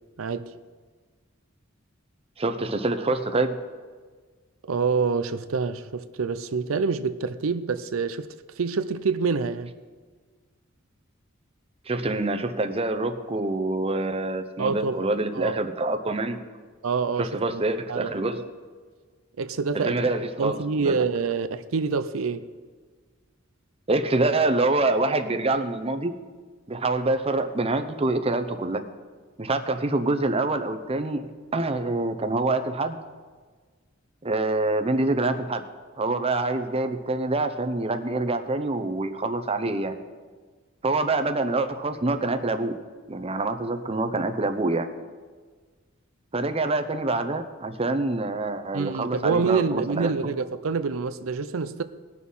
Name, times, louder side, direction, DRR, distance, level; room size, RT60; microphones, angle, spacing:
voice 1, 0.2-0.6 4.6-9.7 14.6-15.1 15.3-15.6 16.8-17.6 17.9-18.1 19.4-19.9 20.4-22.5 48.7-51.8, right 5 dB, 90° right, 0.6 m, -27 dB
voice 2, 2.4-3.6 11.9-16.4 17.2-18.4 19.8-21.0 23.9-26.1 26.7-28.8 29.4-31.2 31.5-33.0 34.2-35.6 36.0-39.9 40.8-42.7 43.1-44.9 46.3-50.1, right 2 dB, 30° right, 0.7 m, -26 dB
19.0 x 6.3 x 5.5 m
head